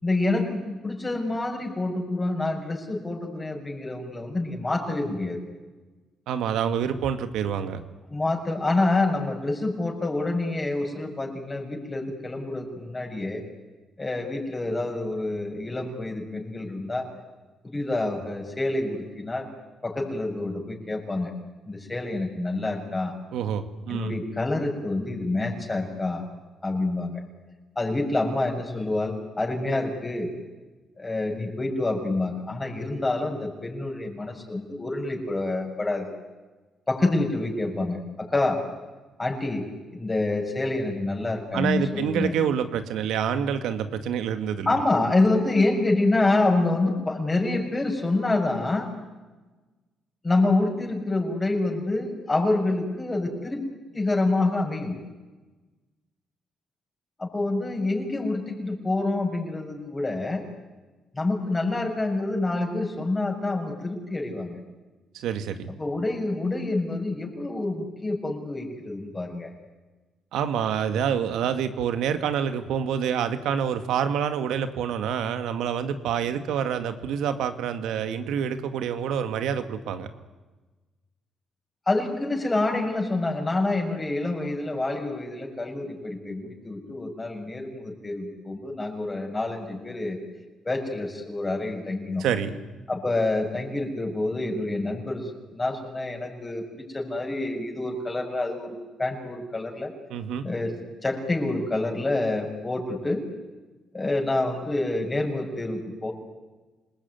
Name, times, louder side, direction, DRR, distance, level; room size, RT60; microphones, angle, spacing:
voice 1, 0.0-5.4 8.1-13.4 14.0-17.1 17.7-19.5 19.8-21.3 21.7-23.1 23.9-26.2 26.6-27.2 27.8-30.3 31.0-36.1 36.9-38.6 39.2-39.6 39.9-42.3 44.7-48.9 50.2-53.7 53.9-55.0 57.2-60.4 61.1-64.6 65.8-69.5 81.9-90.2 90.6-92.3 92.9-99.9 100.4-100.7 101.0-103.2 103.9-106.1, left 2 dB, 20° left, 2 dB, 7.1 m, -27 dB
voice 2, 6.3-7.8 23.3-24.2 41.5-44.7 65.1-65.7 70.3-80.1 92.2-92.6 100.1-100.5, right 8 dB, 85° right, 9 dB, 2.2 m, -27 dB
27.5 x 20.0 x 9.6 m, 1.2 s
cardioid pair, 90°, 0 cm